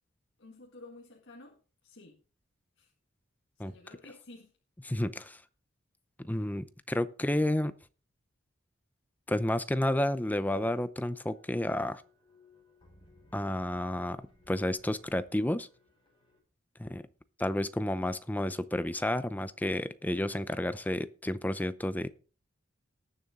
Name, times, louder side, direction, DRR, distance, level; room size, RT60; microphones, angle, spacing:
voice 1, 0.4-2.2 2.8-2.9 3.6-4.5, left 2 dB, 65° left, 0 dB, 1.8 m, -52 dB
voice 2, 4.9-5.4 6.2-7.7 9.3-12.0 13.3-15.7 16.8-17.0 17.4-22.1, left 1 dB, 10° left, 13 dB, 0.6 m, -31 dB
sound 1, 11.0-16.4, left 2 dB, 25° left, 5.7 m, -62 dB
19.0 x 7.0 x 3.7 m, 0.36 s
head